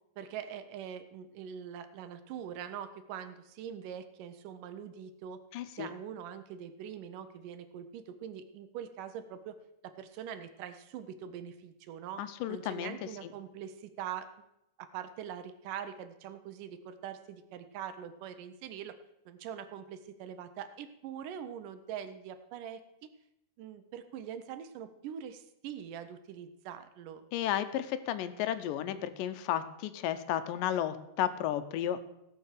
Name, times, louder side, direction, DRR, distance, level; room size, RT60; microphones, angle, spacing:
voice 1, 0.2-5.4 5.7-9.6 9.8-12.2 12.5-14.3 14.8-19.0 19.3-22.8 23.6-27.2, right 9 dB, 80° right, 10 dB, 2.4 m, -43 dB
voice 2, 5.5-5.9 12.2-13.0 13.2-13.3 27.3-32.0, left 11 dB, 85° left, 11 dB, 2.4 m, -33 dB
16.5 x 6.2 x 6.6 m, 0.83 s
omnidirectional pair, 3.8 m